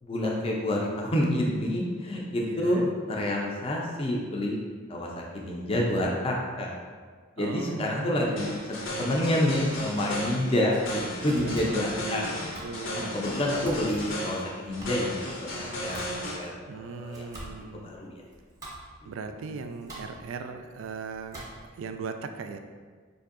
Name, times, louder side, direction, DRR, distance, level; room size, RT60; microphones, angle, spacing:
voice 1, 0.0-2.8 3.1-4.6 4.9-6.8 7.4-12.2 13.1-18.2, left 1 dB, 30° left, -2 dB, 0.4 m, -28 dB
voice 2, 2.4-2.9 7.4-8.6 8.9-9.1 11.4-12.3 12.6-13.4 16.7-17.9 19.1-22.6, right 4 dB, 80° right, 8 dB, 0.3 m, -39 dB
sound 1, 8.4-16.4, left 1 dB, 70° left, 0.6 m, -35 dB
Domestic sounds home sounds, 10.5-21.9, right 1 dB, 20° right, 0.7 m, -47 dB
4.6 x 2.6 x 2.5 m, 1.6 s
head